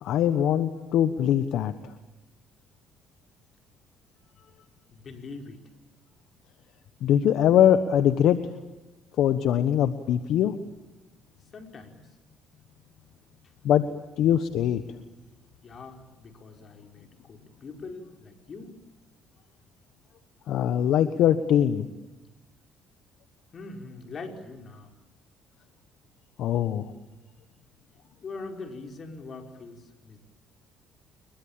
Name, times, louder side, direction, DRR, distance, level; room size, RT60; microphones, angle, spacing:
voice 1, 0.0-1.7 7.0-8.4 9.2-10.5 13.6-13.8 14.2-14.8 20.5-21.9 26.4-26.9, left 10 dB, 70° left, 11 dB, 1.2 m, -22 dB
voice 2, 4.9-5.6 11.5-12.1 15.6-18.7 23.5-24.9 28.2-30.2, left 3 dB, 45° left, 4 dB, 5.0 m, -42 dB
28.5 x 22.5 x 8.9 m, 1.1 s
supercardioid pair, 75°, 0 cm